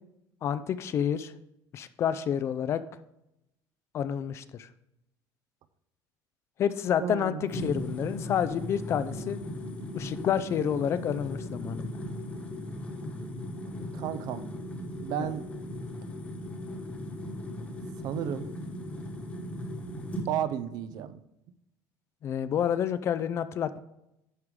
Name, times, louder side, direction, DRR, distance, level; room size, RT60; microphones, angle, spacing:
voice 1, 0.4-1.3 1.7-2.8 3.9-4.7 6.6-9.4 9.9-12.0 15.2-15.3 22.2-23.8, left 9 dB, 35° left, 14 dB, 0.4 m, -29 dB
voice 2, 7.0-7.5 13.9-14.4 15.0-15.5 18.0-18.5 19.9-21.2, right 10 dB, 60° right, 13 dB, 0.5 m, -33 dB
sound 1, 7.5-20.3, left 1 dB, 20° left, 1.2 m, -37 dB
11.0 x 4.7 x 3.7 m, 0.84 s
cardioid pair, 170°, 8 cm